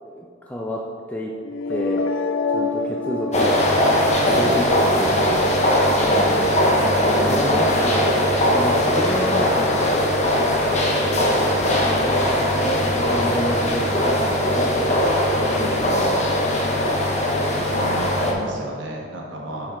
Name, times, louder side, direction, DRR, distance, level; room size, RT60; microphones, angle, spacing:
voice 1, 0.0-0.8 1.1-1.3 1.7-2.1 2.5-3.8 4.2-5.6 6.9-8.1 8.5-10.0 11.1-14.9 15.4-16.3 19.7-19.8, equal, 10° left, -2 dB, 0.4 m, -29 dB
sound 1, 1.4-7.4, left 3 dB, 80° left, 0.4 m, -29 dB
sound 2, 3.3-18.3, left 1 dB, 35° left, 1.0 m, -20 dB
voice 2, 17.2-19.8, right 1 dB, 70° right, -1 dB, 1.3 m, -34 dB
9.5 x 4.6 x 3.7 m, 2.1 s
head